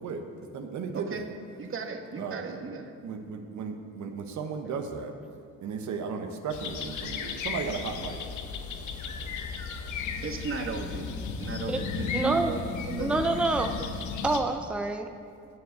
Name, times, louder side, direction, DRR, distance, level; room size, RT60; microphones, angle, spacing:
voice 1, 0.0-1.3 2.2-2.7 3.0-5.2 5.6-8.2, right 5 dB, 70° right, 5 dB, 1.1 m, -35 dB
voice 2, 0.9-1.2 1.6-2.9 10.2-11.1 11.4-13.2, right 5 dB, 45° right, 5 dB, 1.3 m, -35 dB
sound 1, 6.5-14.4, left 5 dB, 75° left, 0.9 m, -35 dB
voice 3, 12.1-12.5 13.0-13.7 14.2-15.1, right 2 dB, 5° right, 6 dB, 0.6 m, -27 dB
9.1 x 7.0 x 7.9 m, 2.3 s
cardioid pair, 90°, 30 cm